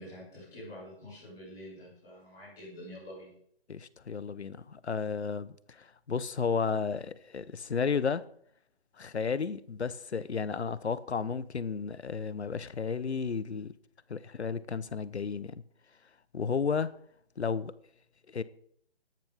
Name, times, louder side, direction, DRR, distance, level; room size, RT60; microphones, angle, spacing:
voice 1, 0.0-3.3, equal, ahead, 0.7 m, -47 dB
voice 2, 3.7-8.2 9.0-13.7 14.1-15.6 16.3-16.9 17.4-17.7 18.3-18.4, left 5 dB, 90° left, 1.0 m, -33 dB
13.5 x 10.5 x 3.6 m
hypercardioid pair, 170°, 32 cm